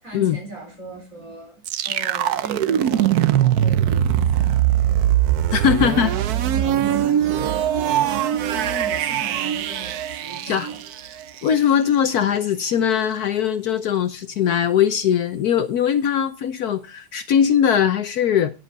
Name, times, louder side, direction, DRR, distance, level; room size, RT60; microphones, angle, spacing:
voice 1, 0.0-1.6 1.8-5.0 5.6-10.8, right 2 dB, 45° right, 4.6 m, -38 dB
sound 1, 1.7-11.5, right 11 dB, 65° right, 1.2 m, -21 dB
voice 2, 5.5-6.1 10.4-10.7 11.4-18.5, left 8 dB, 65° left, 1.2 m, -20 dB
12.0 x 9.8 x 4.1 m
omnidirectional pair, 1.9 m